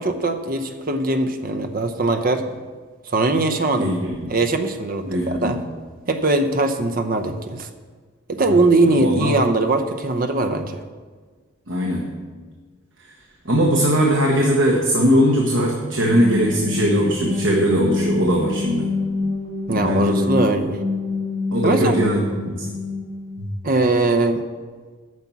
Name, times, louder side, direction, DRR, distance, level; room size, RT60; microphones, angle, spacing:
voice 1, 0.0-2.4 3.1-3.9 4.3-5.6 6.1-7.7 8.3-10.8 19.7-20.8 21.6-21.9 23.6-24.4, right 2 dB, 45° right, 7 dB, 0.7 m, -20 dB
voice 2, 3.8-4.3 5.0-5.6 8.4-8.6 8.9-9.4 11.7-12.0 13.0-13.1 13.4-18.9 19.7-20.3 21.5-22.7 23.4-23.5, equal, 70° right, -1 dB, 1.3 m, -20 dB
sound 1, 15.7-23.5, left 4 dB, 85° left, 1.8 m, -27 dB
9.5 x 6.0 x 7.1 m, 1.5 s
head